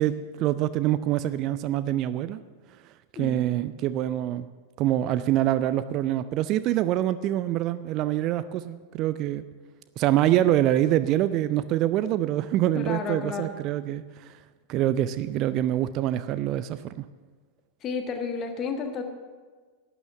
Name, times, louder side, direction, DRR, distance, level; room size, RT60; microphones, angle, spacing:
voice 1, 0.0-2.4 3.1-4.5 4.8-9.4 10.0-14.4 14.7-17.0, right 13 dB, 40° right, 14 dB, 0.4 m, -25 dB
voice 2, 3.1-3.7 12.7-13.5 17.8-19.0, left 5 dB, 30° left, 5 dB, 1.6 m, -32 dB
12.0 x 9.2 x 7.0 m, 1.5 s
figure-of-eight pair, 90°, 0 cm